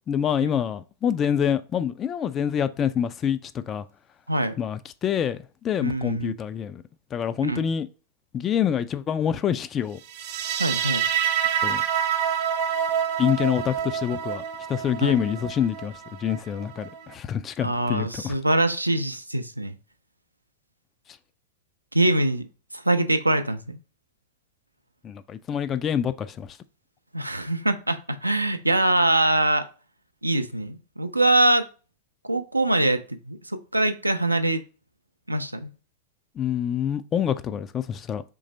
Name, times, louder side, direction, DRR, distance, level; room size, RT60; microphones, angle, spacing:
voice 1, 0.1-3.9 4.6-6.8 7.1-7.9 8.3-10.0 11.6-11.8 13.2-14.4 14.7-18.3 25.0-26.6 36.4-38.2, left 8 dB, 25° left, 0.3 m, -26 dB
voice 2, 5.8-6.4 7.4-7.6 10.6-11.0 15.0-15.2 17.6-19.8 21.9-22.4 22.7-23.8 27.1-29.7 30.2-31.7 32.2-34.6 35.3-35.7, right 1 dB, 85° right, 0.4 m, -23 dB
sound 1, 10.1-17.1, right 9 dB, 50° right, 0.6 m, -27 dB
3.9 x 3.2 x 4.1 m
figure-of-eight pair, 90°, 0 cm